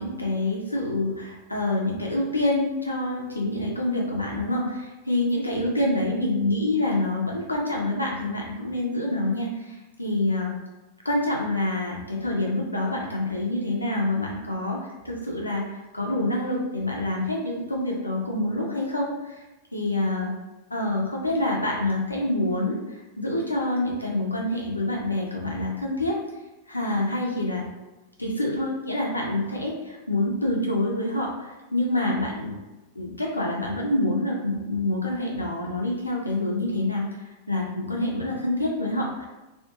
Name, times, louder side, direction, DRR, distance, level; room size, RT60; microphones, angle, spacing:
voice 1, 0.0-10.6 11.0-14.8 15.0-19.4 19.7-20.3 20.7-26.2 26.7-27.6 28.2-32.6 32.9-39.3, left 1 dB, 85° left, -2 dB, 0.5 m, -27 dB
2.4 x 2.4 x 2.6 m, 1.1 s
figure-of-eight pair, 90°, 0 cm